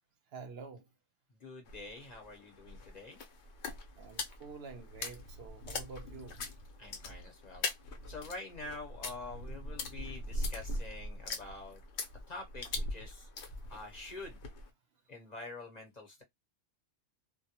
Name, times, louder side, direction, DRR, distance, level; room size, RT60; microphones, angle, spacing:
voice 1, 0.3-0.9 4.0-6.4, right 5 dB, 65° right, 0.8 m, -48 dB
voice 2, 1.4-3.2 6.8-7.7 8.1-11.8 12.3-13.3 13.7-14.4 15.1-16.2, left 2 dB, 40° left, 0.8 m, -46 dB
sound 1, 1.7-14.7, left 2 dB, 75° left, 1.0 m, -41 dB
2.3 x 2.1 x 2.7 m
omnidirectional pair, 1.2 m